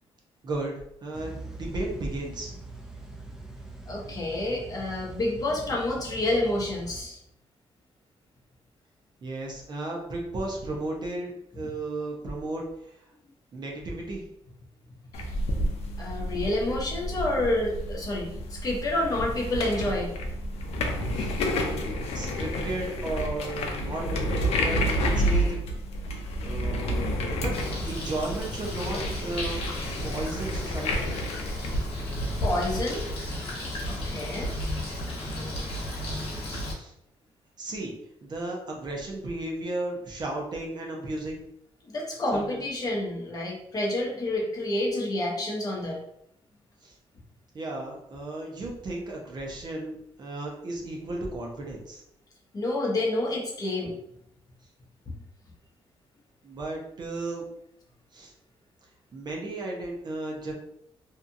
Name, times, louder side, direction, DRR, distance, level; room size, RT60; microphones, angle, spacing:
voice 1, 0.4-2.5 9.2-13.1 13.5-14.3 21.1-21.3 21.6-27.1 27.4-29.6 30.0-31.0 36.7-36.9 37.6-38.0 38.2-41.4 42.3-42.7 46.8-46.9 47.5-52.0 56.4-57.5 58.1-58.3 59.1-60.5, right 2 dB, 45° right, 0 dB, 0.7 m, -34 dB
sound 1, 1.1-7.0, right 2 dB, 5° right, 0.4 m, -42 dB
voice 2, 3.9-7.2 15.2-15.3 16.0-20.1 32.4-33.0 33.8-34.5 41.9-46.0 52.5-53.9, left 1 dB, 35° left, -2 dB, 0.8 m, -29 dB
sound 2, 15.1-32.7, equal, 85° left, 0.5 m, -30 dB
Bird, 27.5-36.7, left 1 dB, 65° left, 1.0 m, -33 dB
2.7 x 2.4 x 2.6 m, 0.77 s
cardioid pair, 110°, 10 cm